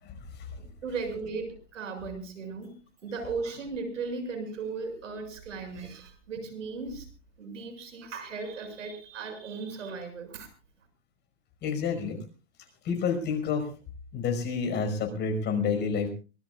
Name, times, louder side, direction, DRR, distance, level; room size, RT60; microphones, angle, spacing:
voice 1, 0.0-0.6 11.6-12.2 12.8-13.7 14.1-16.1, left 5 dB, 30° left, 6 dB, 5.3 m, -29 dB
voice 2, 0.6-7.1 7.4-10.5, right 4 dB, 85° right, 7 dB, 6.8 m, -37 dB
24.0 x 20.0 x 2.4 m, 0.34 s
hypercardioid pair, 135°, 37 cm